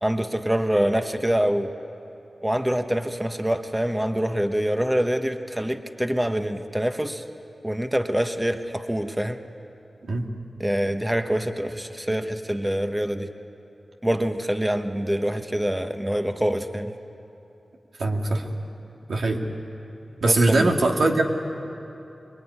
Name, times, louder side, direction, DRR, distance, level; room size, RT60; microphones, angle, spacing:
voice 1, 0.0-1.7 2.4-7.2 7.6-9.4 10.6-13.3 14.0-16.9 20.2-20.7, equal, 10° right, 7 dB, 1.2 m, -25 dB
voice 2, 18.0-18.5 19.1-19.4 20.2-21.2, right 2 dB, 85° right, 1 dB, 2.3 m, -21 dB
26.0 x 21.0 x 9.8 m, 2.8 s
wide cardioid pair, 65°, 0 cm